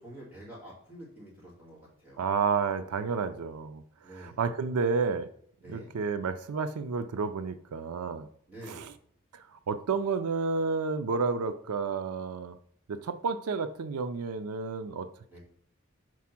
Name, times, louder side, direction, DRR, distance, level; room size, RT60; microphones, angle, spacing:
voice 1, 0.0-2.2 4.0-4.4 5.6-5.9 8.5-8.9 15.3-15.4, equal, 10° right, -7 dB, 2.4 m, -47 dB
voice 2, 2.2-5.3 5.7-8.3 8.6-8.9 9.5-12.5 12.9-15.1, right 5 dB, 90° right, 11 dB, 0.4 m, -31 dB
4.8 x 4.2 x 5.9 m, 0.65 s
head